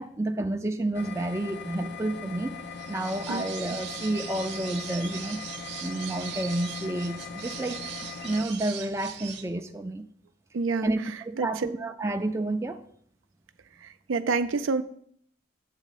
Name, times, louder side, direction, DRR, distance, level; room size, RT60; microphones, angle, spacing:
voice 1, 0.0-2.6 2.9-5.4 5.8-10.1 10.8-12.8, right 1 dB, 15° right, 5 dB, 0.4 m, -30 dB
sound 1, 0.9-8.5, left 5 dB, 55° left, 0.4 m, -40 dB
sound 2, 2.7-9.4, right 8 dB, 60° right, 0.8 m, -40 dB
voice 2, 10.5-10.9 11.4-11.5 14.1-14.8, right 4 dB, 90° right, 10 dB, 0.5 m, -26 dB
8.3 x 3.5 x 5.8 m, 0.63 s
head